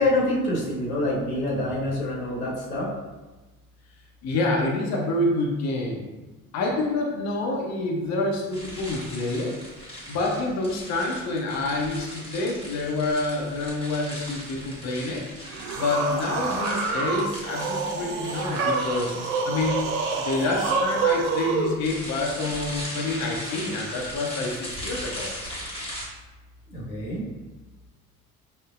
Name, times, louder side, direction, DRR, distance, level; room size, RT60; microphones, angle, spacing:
voice 1, 0.0-2.9 26.7-27.2, left 1 dB, 80° left, -5 dB, 1.0 m, -26 dB
voice 2, 4.2-6.0 6.5-9.6 10.1-15.3 15.8-19.1 19.5-19.8 20.1-25.3, left 2 dB, 40° left, -1 dB, 0.7 m, -27 dB
sound 1, 8.5-26.1, equal, 15° left, 1.3 m, -39 dB
sound 2, 15.4-21.7, right 4 dB, 75° right, 0.6 m, -27 dB
5.3 x 2.1 x 2.4 m, 1.2 s
figure-of-eight pair, 55°, 43 cm